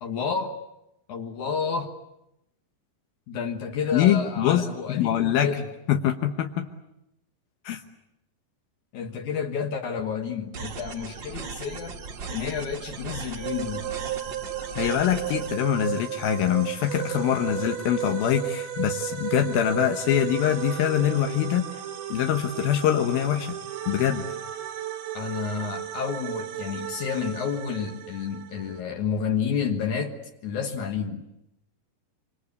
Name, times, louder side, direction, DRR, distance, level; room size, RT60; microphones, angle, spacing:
voice 1, 0.0-0.6 1.1-2.0 3.3-5.7 8.9-12.0 12.3-13.9 25.1-30.2 30.4-31.3, left 6 dB, 60° left, 4 dB, 2.7 m, -30 dB
voice 2, 3.9-5.5 5.9-6.7 7.6-7.8 14.8-21.6 22.1-23.6 23.9-24.3, left 10 dB, 80° left, 5 dB, 3.0 m, -24 dB
sound 1, 10.5-15.5, right 5 dB, 45° right, 1.6 m, -38 dB
sound 2, 13.4-28.8, right 11 dB, 90° right, 3.8 m, -34 dB
26.0 x 25.5 x 8.4 m, 0.84 s
omnidirectional pair, 4.2 m